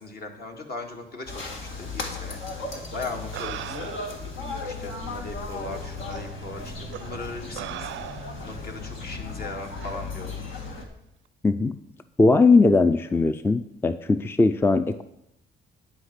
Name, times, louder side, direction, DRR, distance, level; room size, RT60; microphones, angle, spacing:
voice 1, 0.0-3.9 4.6-7.9 8.4-10.3, left 3 dB, 55° left, 3 dB, 1.9 m, -38 dB
sound 1, 1.3-10.8, left 3 dB, 75° left, 1.9 m, -36 dB
sound 2, 2.7-2.8 3.3-4.3 5.2-5.3 6.1-6.3 6.9-7.1 7.6-8.5 9.8-10.0, right 12 dB, 75° right, 0.5 m, -38 dB
voice 2, 11.4-11.8 12.2-15.0, left 3 dB, 10° left, 11 dB, 0.4 m, -19 dB
10.5 x 5.0 x 8.0 m, 0.80 s
cardioid pair, 90°, 20 cm